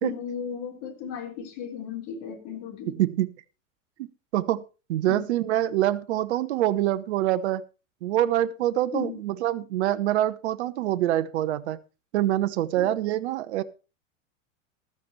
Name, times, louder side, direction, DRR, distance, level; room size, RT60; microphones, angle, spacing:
voice 1, 0.0-3.0 5.1-5.3 8.9-9.2 12.8-12.9, left 7 dB, 45° left, 3.8 m, -35 dB
voice 2, 3.0-3.3 4.3-4.6 4.9-7.6 8.0-11.8 12.1-13.6, right 13 dB, 60° right, 1.0 m, -25 dB
14.5 x 13.0 x 3.1 m
figure-of-eight pair, 90°, 39 cm